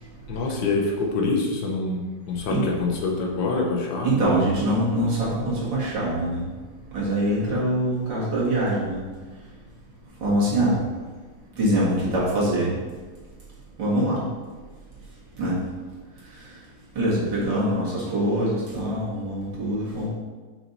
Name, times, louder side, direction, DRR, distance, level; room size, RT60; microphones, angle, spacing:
voice 1, 0.3-4.4, left 3 dB, 85° left, 0 dB, 1.8 m, -26 dB
voice 2, 4.0-6.4 6.9-9.0 10.2-10.8 11.6-12.7 13.8-14.2 15.4-15.6 17.0-20.1, right 1 dB, 80° right, -6 dB, 2.8 m, -23 dB
6.2 x 5.7 x 4.0 m, 1.4 s
omnidirectional pair, 2.0 m